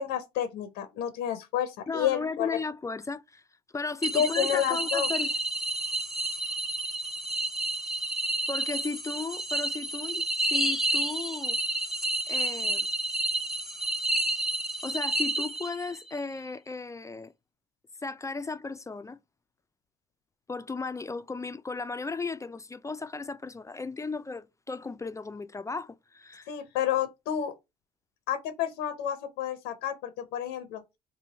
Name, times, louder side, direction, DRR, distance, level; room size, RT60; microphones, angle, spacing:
voice 1, 0.0-2.5 4.1-5.1 26.5-27.5 28.3-30.8, left 10 dB, 85° left, 0.6 m, -30 dB
voice 2, 1.9-3.4 3.7-5.4 8.5-11.6 12.3-12.9 14.8-17.3 18.0-19.2 20.5-26.5, left 4 dB, 20° left, 0.4 m, -35 dB
sound 1, 4.0-16.0, right 2 dB, ahead, 0.8 m, -30 dB
2.9 x 2.7 x 3.9 m
supercardioid pair, 70°, 17 cm